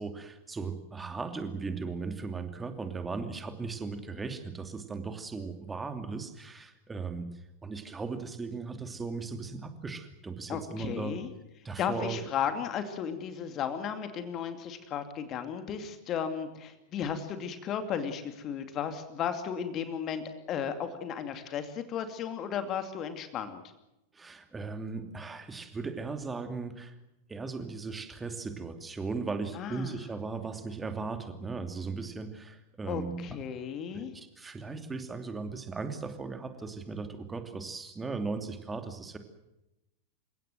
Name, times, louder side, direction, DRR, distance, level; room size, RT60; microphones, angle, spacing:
voice 1, 0.0-11.2 11.6-12.2 24.1-26.9 27.3-33.2 33.9-39.2, right 4 dB, 15° right, 7 dB, 2.8 m, -37 dB
voice 2, 10.5-11.3 11.8-23.6 29.6-30.0 32.9-34.1, left 8 dB, 30° left, 8 dB, 2.5 m, -34 dB
29.0 x 17.0 x 7.8 m, 0.92 s
figure-of-eight pair, 90°, 0 cm